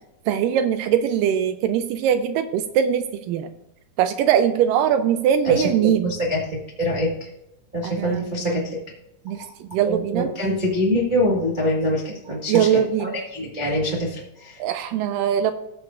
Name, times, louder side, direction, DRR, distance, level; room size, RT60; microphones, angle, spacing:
voice 1, 0.3-3.5 4.0-6.1 7.8-8.6 9.3-10.3 12.5-13.1 14.6-15.5, right 9 dB, 85° right, 9 dB, 2.2 m, -21 dB
voice 2, 5.4-7.3 7.7-8.8 9.3-9.5 9.8-14.6, left 1 dB, 60° right, -4 dB, 0.5 m, -25 dB
19.0 x 6.4 x 2.5 m, 0.86 s
omnidirectional pair, 3.9 m